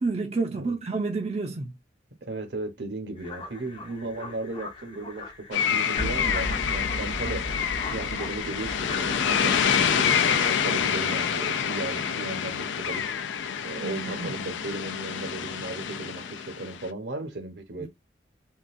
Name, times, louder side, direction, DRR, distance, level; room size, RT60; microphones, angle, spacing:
voice 1, 0.0-1.7 9.8-10.2 13.8-14.3 17.8-17.9, right 3 dB, 35° right, 0.4 m, -30 dB
voice 2, 2.2-7.7 7.9-13.0 13.6-17.9, right 2 dB, 70° right, 0.9 m, -36 dB
sound 1, 3.2-10.8, left 4 dB, 30° left, 0.5 m, -41 dB
sound 2, 5.5-16.9, left 7 dB, 90° left, 0.4 m, -27 dB
sound 3, 6.0-10.3, left 1 dB, 45° left, 0.9 m, -36 dB
3.7 x 2.3 x 2.5 m
head